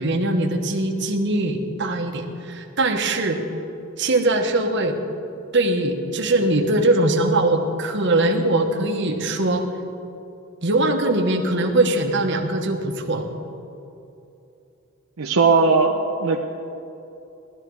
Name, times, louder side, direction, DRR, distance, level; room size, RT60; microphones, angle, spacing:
voice 1, 0.0-3.4 4.0-5.0 5.5-9.6 10.6-13.2, right 2 dB, 55° right, 3 dB, 1.3 m, -21 dB
voice 2, 15.2-16.4, right 4 dB, 80° right, 2 dB, 0.8 m, -18 dB
17.0 x 12.5 x 4.7 m, 2.8 s
head